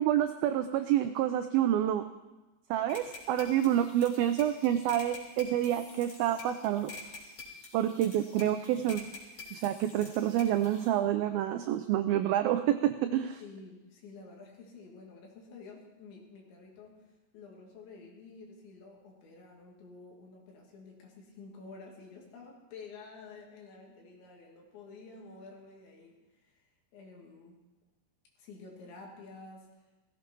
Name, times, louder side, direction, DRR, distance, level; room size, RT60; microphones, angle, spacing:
voice 1, 0.0-2.0 2.7-6.9 7.7-9.1 9.5-13.4, right 11 dB, 90° right, 9 dB, 2.1 m, -28 dB
sound 1, 2.9-10.9, left 3 dB, 40° left, 4.1 m, -48 dB
voice 2, 13.4-17.0 17.3-26.6 26.9-27.6 28.4-29.7, left 4 dB, 85° left, 0 dB, 4.9 m, -50 dB
17.0 x 15.5 x 4.6 m, 1.1 s
omnidirectional pair, 5.0 m